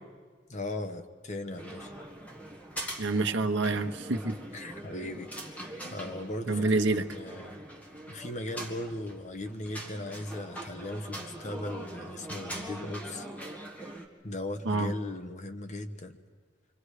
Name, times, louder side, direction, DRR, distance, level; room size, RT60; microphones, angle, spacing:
voice 1, 0.5-2.0 4.5-7.6 8.1-13.3 14.2-16.2, left 1 dB, 40° left, 7 dB, 1.2 m, -38 dB
sound 1, 1.5-14.1, right 1 dB, 10° left, 1.8 m, -43 dB
voice 2, 3.0-4.3 6.5-7.0 14.7-14.9, right 3 dB, 70° right, 6 dB, 1.1 m, -27 dB
28.5 x 24.5 x 5.0 m, 1.5 s
head